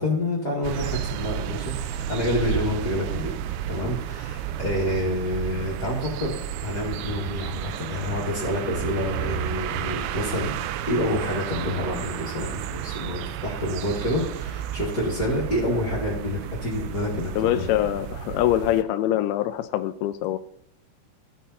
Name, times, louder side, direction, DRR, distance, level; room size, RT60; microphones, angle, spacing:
voice 1, 0.0-3.3 3.7-10.5 10.9-17.6, left 1 dB, 30° left, -6 dB, 2.3 m, -28 dB
sound 1, 0.6-18.8, right 10 dB, 80° right, 2.4 m, -32 dB
voice 2, 17.4-20.4, left 13 dB, 85° left, 9 dB, 2.4 m, -24 dB
14.5 x 5.5 x 4.3 m, 0.69 s
omnidirectional pair, 4.5 m